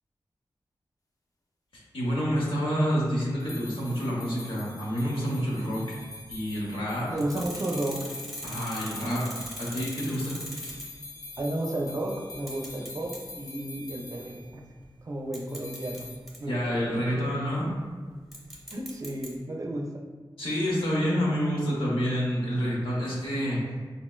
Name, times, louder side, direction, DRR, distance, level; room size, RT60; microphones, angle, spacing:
voice 1, 1.7-5.8 6.3-7.1 8.4-9.2 9.6-10.4 16.5-17.7 20.4-23.6, equal, 90° left, -5 dB, 0.9 m, -28 dB
sound 1, 3.4-14.5 15.5-16.2, left 3 dB, 40° left, 0.5 m, -45 dB
sound 2, 6.0-6.4 7.2-11.1 11.4-11.5 12.3-13.3 13.7-14.0 14.8-14.9 15.3-16.4 18.3-19.3, right 1 dB, ahead, 0.7 m, -41 dB
voice 2, 7.1-8.1 9.0-9.3 11.4-14.6 15.0-16.1 16.4-17.2 18.7-19.9, right 1 dB, 40° right, 1 dB, 0.4 m, -33 dB
4.1 x 2.1 x 2.2 m, 1.5 s
wide cardioid pair, 65°, 9 cm